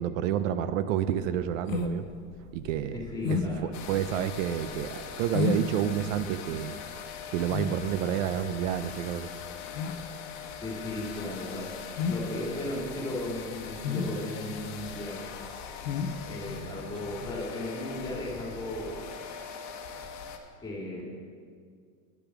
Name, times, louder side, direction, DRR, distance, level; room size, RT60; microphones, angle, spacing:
voice 1, 0.0-2.1 2.5-3.0 3.3-6.7 7.3-9.3, right 10 dB, 70° right, 12 dB, 0.6 m, -29 dB
sound 1, 1.1-17.4, left 5 dB, 70° left, 1.0 m, -34 dB
voice 2, 2.9-3.7 10.6-15.3 16.2-19.0 20.6-21.0, left 1 dB, 10° left, -2 dB, 2.1 m, -36 dB
sound 2, 3.7-20.4, left 7 dB, 45° left, 1.1 m, -42 dB
10.5 x 6.8 x 5.9 m, 2.1 s
supercardioid pair, 135°, 40 cm